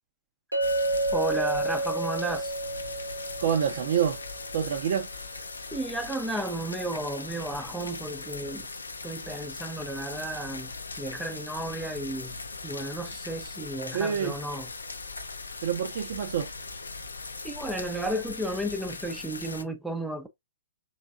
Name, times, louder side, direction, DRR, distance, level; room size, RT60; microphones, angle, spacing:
Chink clink, 0.5-4.8, right 2 dB, 90° right, 1.0 m, -30 dB
sound 1, 0.6-19.6, left 3 dB, 75° left, 0.5 m, -40 dB
voice 1, 1.1-2.5 5.7-8.7 9.0-12.4 12.6-14.7 17.4-20.3, right 1 dB, 5° right, 0.5 m, -33 dB
voice 2, 3.4-4.2 4.5-5.1 13.9-14.3 15.6-16.5, right 8 dB, 50° right, 0.5 m, -27 dB
3.3 x 3.2 x 2.4 m
figure-of-eight pair, 115°, 0 cm